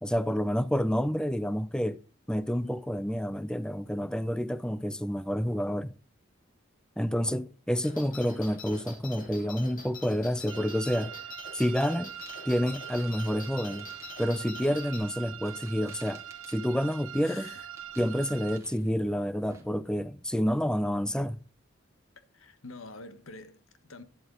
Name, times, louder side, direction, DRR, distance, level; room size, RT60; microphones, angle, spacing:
voice 1, 0.0-2.0 2.3-6.0 7.0-11.1 11.5-12.1 12.5-13.9 14.2-16.2 16.5-17.4 18.0-21.4, equal, 5° left, 0.5 m, -29 dB
sound 1, 7.8-15.0, left 4 dB, 45° left, 3.6 m, -46 dB
sound 2, 10.5-18.6, right 11 dB, 80° right, 0.8 m, -43 dB
sound 3, 12.1-19.6, right 3 dB, 15° right, 2.7 m, -56 dB
voice 2, 17.2-17.7 22.1-24.0, left 3 dB, 80° left, 1.4 m, -46 dB
11.5 x 11.0 x 4.0 m
head